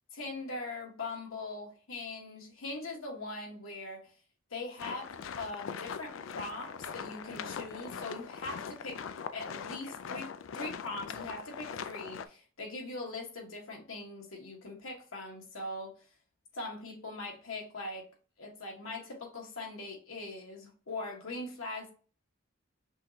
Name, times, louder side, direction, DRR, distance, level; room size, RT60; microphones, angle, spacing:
voice 1, 0.1-4.0 4.5-9.0 9.3-15.9 16.5-18.1 18.4-21.9, left 2 dB, 90° left, 1.4 m, -41 dB
sound 1, 4.8-12.3, left 6 dB, 70° left, 0.4 m, -41 dB
5.5 x 3.0 x 2.8 m
head